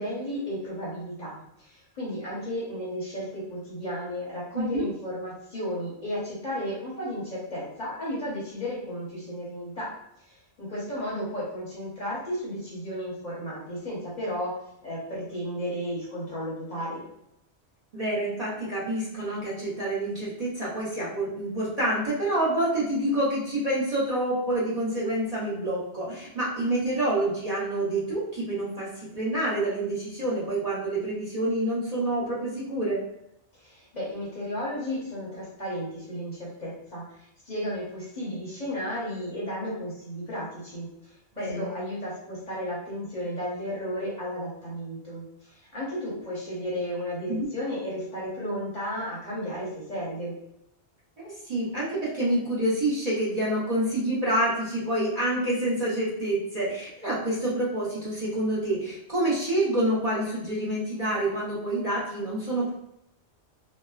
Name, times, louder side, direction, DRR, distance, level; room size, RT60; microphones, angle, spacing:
voice 1, 0.0-17.0 33.5-50.3, equal, 45° left, -6 dB, 0.9 m, -34 dB
voice 2, 4.5-4.9 17.9-28.9 29.1-33.0 41.3-41.7 47.3-47.5 51.2-62.7, right 1 dB, 40° right, -7 dB, 0.8 m, -27 dB
3.1 x 2.1 x 2.3 m, 0.80 s
omnidirectional pair, 1.1 m